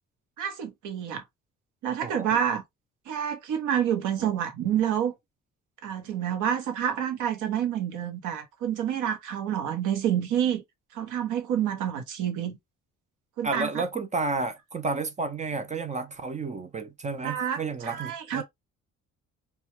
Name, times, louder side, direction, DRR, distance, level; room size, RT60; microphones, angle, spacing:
voice 1, 0.4-1.2 1.8-2.6 3.1-5.1 5.8-10.6 10.9-12.6 13.4-13.8 17.2-18.4, right 9 dB, 85° right, 0.8 m, -28 dB
voice 2, 13.4-18.4, right 3 dB, 25° right, 0.4 m, -31 dB
2.2 x 2.2 x 2.8 m
cardioid pair, 90°, 30 cm